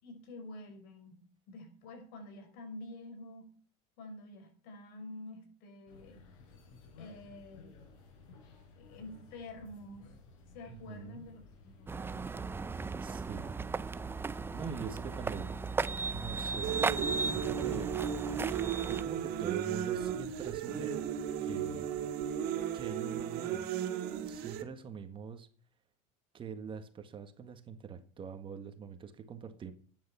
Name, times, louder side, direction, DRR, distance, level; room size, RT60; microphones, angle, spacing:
voice 1, 0.0-1.2 1.5-3.5 4.0-6.2 7.0-7.8 8.7-10.1 10.5-12.2, left 2 dB, 70° left, 5.7 m, -48 dB
sound 1, 5.9-21.0, left 4 dB, 90° left, 5.8 m, -56 dB
voice 2, 10.7-11.3 13.0-13.6 14.5-15.6 16.1-16.8 17.3-18.0 18.9-21.0 21.4-21.9 22.7-23.7 24.3-25.5 26.3-29.7, right 6 dB, 30° right, 1.7 m, -44 dB
sound 2, 11.9-19.0, right 4 dB, 15° right, 0.6 m, -36 dB
sound 3, 16.6-24.6, right 9 dB, 65° right, 2.6 m, -35 dB
13.0 x 9.7 x 5.8 m
supercardioid pair, 130°, 17 cm